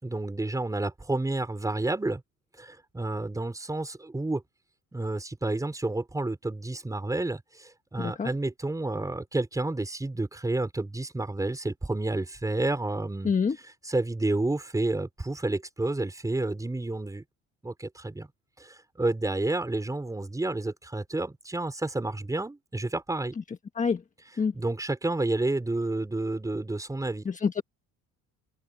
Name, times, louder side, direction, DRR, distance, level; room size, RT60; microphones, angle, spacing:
voice 1, 0.0-2.2 2.6-4.4 4.9-13.3 13.6-17.2 17.6-18.3 18.6-23.3 24.5-27.3, right 2 dB, 10° right, 5.4 m, -30 dB
voice 2, 8.0-8.3 13.2-13.6 23.8-24.0 24.4-24.5 27.2-27.6, left 5 dB, 25° left, 1.4 m, -26 dB
cardioid pair, 120°, 30 cm